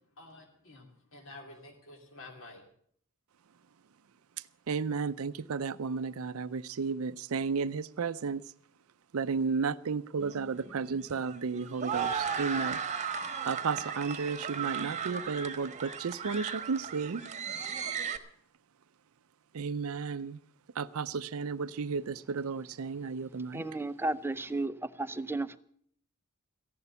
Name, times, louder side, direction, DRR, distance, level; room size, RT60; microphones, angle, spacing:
voice 1, 0.2-2.6, left 2 dB, 60° left, 2.7 m, -50 dB
voice 2, 4.7-8.4 9.1-12.8 13.5-17.2 19.5-20.4 20.8-23.6, right 5 dB, 70° right, 0.5 m, -33 dB
sound 1, 10.2-18.2, right 6 dB, 35° right, 1.2 m, -36 dB
voice 3, 23.5-25.6, right 2 dB, 10° right, 0.5 m, -33 dB
15.0 x 11.0 x 6.9 m
head